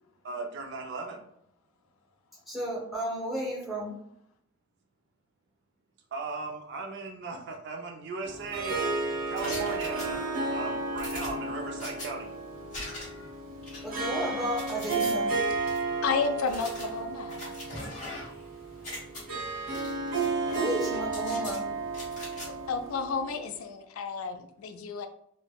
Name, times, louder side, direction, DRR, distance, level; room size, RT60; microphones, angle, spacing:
voice 1, 0.2-1.2 6.1-8.8 9.3-12.3 18.9-19.9, right 3 dB, 55° right, 3 dB, 0.4 m, -38 dB
voice 2, 2.5-3.9 13.8-15.3 20.5-21.6, equal, ahead, -7 dB, 0.9 m, -32 dB
Harp, 8.2-23.5, right 3 dB, 80° right, 1.2 m, -33 dB
sound 1, 9.4-10.5 11.0-12.1 12.7-13.3 13.6-15.1 15.7-15.8 16.4-18.4 18.7-19.2 19.7-20.3 20.5-21.6 21.9-22.5, left 1 dB, 35° left, 1.4 m, -41 dB
voice 3, 16.0-17.5 22.4-25.1, left 5 dB, 85° left, 7 dB, 0.4 m, -32 dB
3.3 x 2.0 x 2.3 m, 0.70 s
head